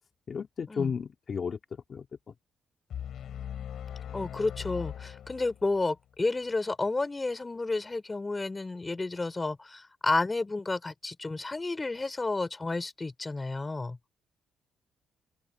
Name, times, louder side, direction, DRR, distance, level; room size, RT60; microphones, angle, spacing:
voice 1, 0.3-1.6 1.9-2.1, left 6 dB, 45° left, 2.3 m, -33 dB
sound 1, 2.9-5.9, left 9 dB, 65° left, 5.2 m, -40 dB
voice 2, 4.1-14.0, left 3 dB, 20° left, 4.7 m, -31 dB
open air
cardioid pair, 90°, 0 cm